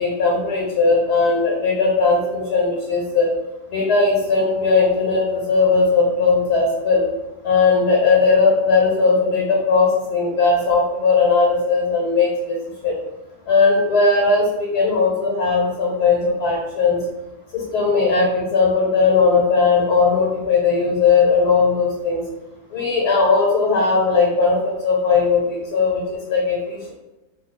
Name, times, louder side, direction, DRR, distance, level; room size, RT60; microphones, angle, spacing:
voice 1, 0.0-3.3 3.7-7.1 7.4-12.6 12.8-13.0 13.5-17.0 17.5-22.2 22.7-26.9, left 4 dB, 85° left, -3 dB, 1.4 m, -18 dB
3.1 x 2.4 x 3.2 m, 1.0 s
omnidirectional pair, 1.7 m